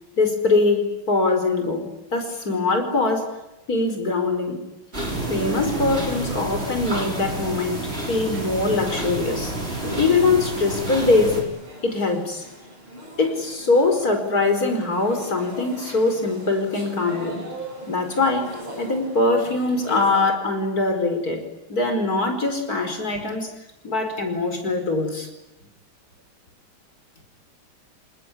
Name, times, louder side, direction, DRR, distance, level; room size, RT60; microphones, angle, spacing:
voice 1, 0.2-3.3 3.7-4.6 5.3-11.4 11.8-12.5 13.2-17.4 17.9-21.4 21.7-23.5 23.8-25.3, left 3 dB, 45° left, 6 dB, 5.4 m, -22 dB
sound 1, 4.9-11.4, right 2 dB, 30° right, 6.8 m, -29 dB
sound 2, 8.2-20.2, equal, 80° right, 9.0 m, -39 dB
28.5 x 20.0 x 9.9 m, 0.93 s
omnidirectional pair, 2.3 m